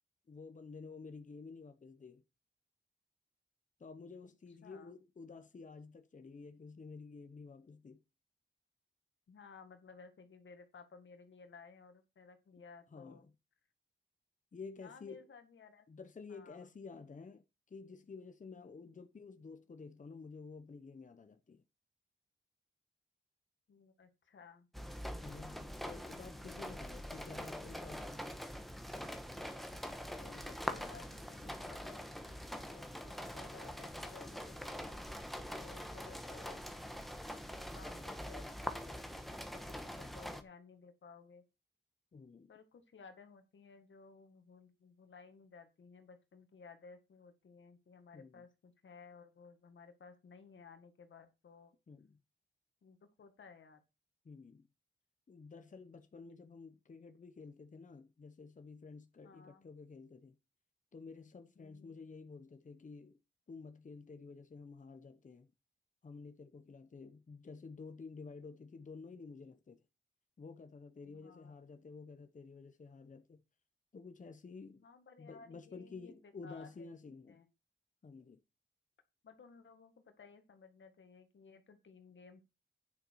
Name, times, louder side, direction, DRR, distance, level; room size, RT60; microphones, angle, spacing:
voice 1, 0.3-2.2 3.8-8.0 12.9-13.3 14.5-15.3 15.9-21.6 25.2-28.1 42.1-42.5 48.1-48.4 51.9-52.2 54.2-54.7 55.3-60.4 60.9-63.2 63.5-65.5 66.0-69.8 70.4-73.4 73.9-74.8 75.2-77.4 78.0-78.4, left 4 dB, 40° left, 0.9 m, -51 dB
voice 2, 9.3-13.2 14.8-15.9 16.3-16.7 23.7-24.7 30.1-35.2 35.5-36.6 37.7-41.4 42.5-51.7 52.8-53.8 59.2-59.7 61.6-62.0 71.1-71.5 74.8-76.9 77.3-77.5 79.2-82.4, left 5 dB, 80° left, 1.8 m, -57 dB
sound 1, 24.7-40.4, equal, ahead, 1.2 m, -44 dB
9.6 x 6.7 x 4.6 m
wide cardioid pair, 100°, 19 cm